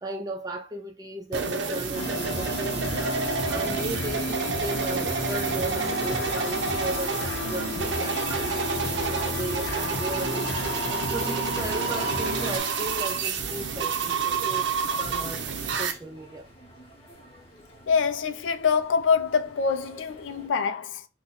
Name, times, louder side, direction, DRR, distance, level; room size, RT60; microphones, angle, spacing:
voice 1, 0.0-3.2 3.5-10.7 11.1-14.7 15.0-15.4 15.8-16.5, right 2 dB, 20° right, 0.6 m, -36 dB
sound 1, 1.3-15.9, right 5 dB, 70° right, 0.5 m, -29 dB
sound 2, 1.9-12.6, left 2 dB, 65° left, 0.7 m, -33 dB
sound 3, 3.1-20.5, equal, 30° left, 1.1 m, -51 dB
voice 2, 17.9-21.1, left 6 dB, 85° left, 0.4 m, -25 dB
2.8 x 2.2 x 3.8 m
head